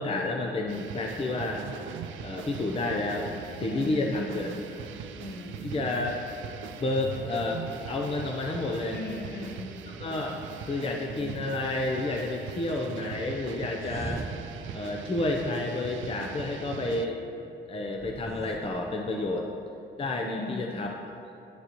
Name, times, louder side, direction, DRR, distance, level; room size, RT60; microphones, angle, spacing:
voice 1, 0.0-1.7 2.2-4.8 5.6-6.2 6.8-9.0 9.9-14.2 14.7-17.2 17.7-19.5 20.0-20.9, left 2 dB, 30° left, 1 dB, 0.6 m, -30 dB
sound 1, 0.7-17.1, right 7 dB, 75° right, 0.5 m, -41 dB
voice 2, 3.7-4.6 5.2-5.6 8.9-9.7 20.2-20.7, left 2 dB, 55° left, 2 dB, 1.1 m, -37 dB
sound 2, 13.8-16.4 17.9-19.7, right 2 dB, 15° right, 0.4 m, -42 dB
11.0 x 6.5 x 3.0 m, 2.8 s
cardioid pair, 90°, 20 cm